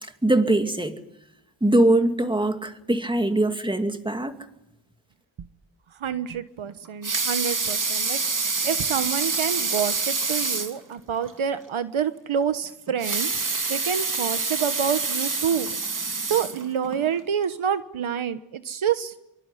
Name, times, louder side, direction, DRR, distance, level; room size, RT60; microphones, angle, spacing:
voice 1, 0.0-1.0 1.6-4.4, right 1 dB, 10° right, 2.4 m, -22 dB
voice 2, 6.0-13.3 13.7-15.7 16.3-19.1, right 8 dB, 70° right, 1.3 m, -27 dB
Water tap faucet / Sink (filling or washing) / Liquid, 6.8-10.8 11.3-11.4 11.7-11.8 12.9-17.0 17.6-17.7, right 4 dB, 40° right, 2.9 m, -27 dB
25.5 x 24.0 x 9.9 m
wide cardioid pair, 115°, 50 cm